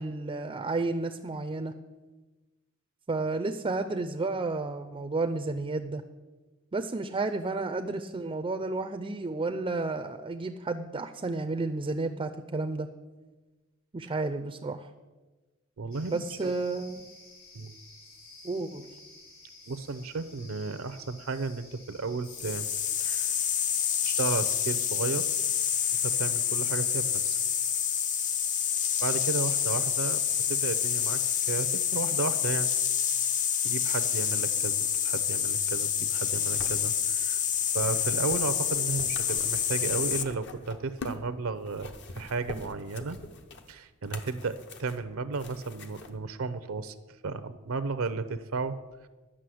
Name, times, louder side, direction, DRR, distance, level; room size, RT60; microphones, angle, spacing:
voice 1, 0.0-1.7 3.1-6.0 6.7-12.9 13.9-14.9 16.1-17.1 18.4-18.9, right 3 dB, 25° right, 8 dB, 0.4 m, -31 dB
voice 2, 15.8-16.5 17.5-17.8 19.7-22.7 23.0-23.3 24.0-25.3 26.0-27.4 29.0-30.2 30.5-31.2 31.5-32.7 33.6-43.2 43.7-47.0 47.2-48.8, right 4 dB, 70° right, 12 dB, 0.6 m, -34 dB
sound 1, 15.9-31.3, left 2 dB, 75° left, 4.3 m, -52 dB
sound 2, 22.3-40.2, left 8 dB, 35° left, 0.5 m, -28 dB
sound 3, 36.1-41.3 41.6-46.1 46.9-47.0, left 2 dB, 55° left, 0.9 m, -45 dB
11.5 x 6.2 x 7.7 m, 1.2 s
head